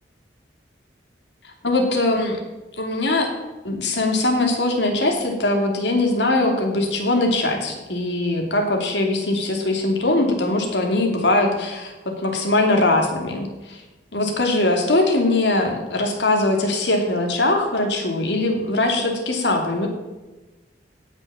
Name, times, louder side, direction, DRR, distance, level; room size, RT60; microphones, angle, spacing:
voice 1, 1.6-2.4 2.8-3.3 3.6-13.8 14.1-19.9, left 2 dB, 80° left, 2 dB, 2.9 m, -21 dB
16.5 x 6.6 x 7.0 m, 1.1 s
head